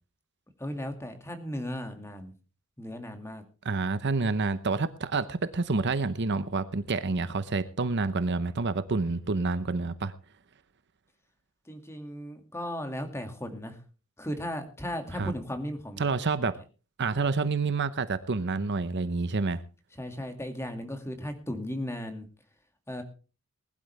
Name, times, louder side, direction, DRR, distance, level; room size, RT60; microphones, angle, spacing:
voice 1, 0.6-2.3 2.8-3.4 11.7-13.8 14.2-16.2 20.0-22.3 22.9-23.0, left 1 dB, 10° left, 6 dB, 2.1 m, -36 dB
voice 2, 3.6-10.1 15.1-15.3 16.0-16.5 17.0-19.6, right 4 dB, 55° right, 13 dB, 0.8 m, -28 dB
20.0 x 12.0 x 3.3 m, 0.34 s
head